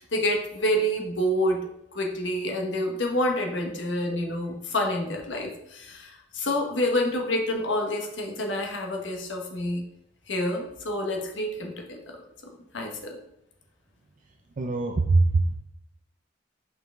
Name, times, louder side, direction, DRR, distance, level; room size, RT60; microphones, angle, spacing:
voice 1, 0.0-9.8 10.3-12.2 12.4-13.2, left 1 dB, 70° left, 2 dB, 1.2 m, -28 dB
voice 2, 14.6-15.5, right 3 dB, 40° right, 2 dB, 0.4 m, -22 dB
5.6 x 4.7 x 3.7 m, 0.78 s
head